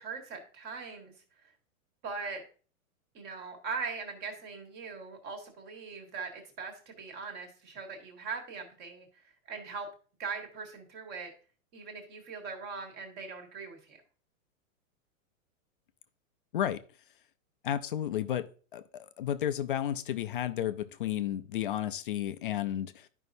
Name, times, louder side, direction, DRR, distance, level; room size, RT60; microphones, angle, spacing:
voice 1, 0.0-1.5 2.0-2.4 3.1-9.9 10.2-11.3 11.7-14.0, right 4 dB, 30° right, 1.6 m, -41 dB
voice 2, 17.6-18.5 18.7-23.1, left 11 dB, 40° left, 0.4 m, -32 dB
11.0 x 5.4 x 2.6 m
supercardioid pair, 165°, 41 cm